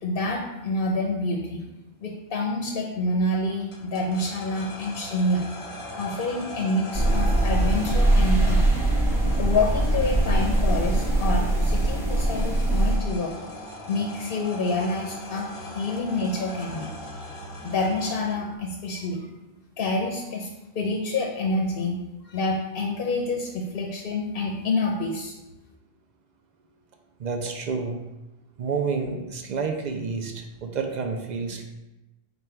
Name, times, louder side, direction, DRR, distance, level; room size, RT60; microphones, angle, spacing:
voice 1, 0.0-1.6 2.0-5.4 6.0-8.7 9.4-13.3 13.9-16.9 17.6-19.3 19.8-20.5 20.7-22.0 22.2-25.3, left 2 dB, 65° left, 1 dB, 0.8 m, -27 dB
sound 1, 3.7-18.6, left 1 dB, 35° left, 0.7 m, -39 dB
sound 2, 6.9-13.0, right 1 dB, 5° right, 0.8 m, -22 dB
voice 2, 27.2-28.0 28.6-31.6, right 5 dB, 55° right, 4 dB, 0.5 m, -29 dB
5.0 x 2.2 x 4.4 m, 1.0 s
omnidirectional pair, 1.0 m